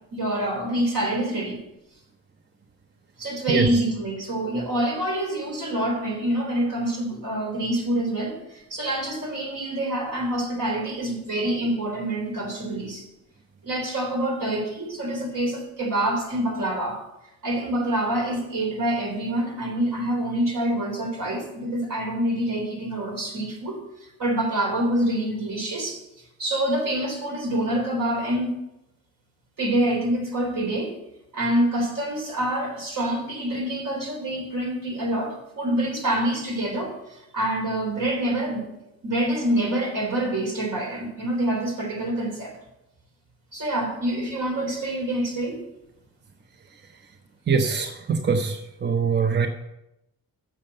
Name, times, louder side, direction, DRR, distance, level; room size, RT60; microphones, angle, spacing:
voice 1, 0.1-1.6 3.2-13.0 13.6-17.0 17.4-26.0 26.4-28.5 29.6-31.0 31.3-38.6 39.0-42.6 43.5-45.6, right 1 dB, 60° right, 1 dB, 3.5 m, -26 dB
voice 2, 3.5-3.8 47.5-49.5, right 5 dB, 30° right, 6 dB, 0.7 m, -23 dB
7.3 x 6.7 x 7.6 m, 0.87 s
cardioid pair, 85°, 36 cm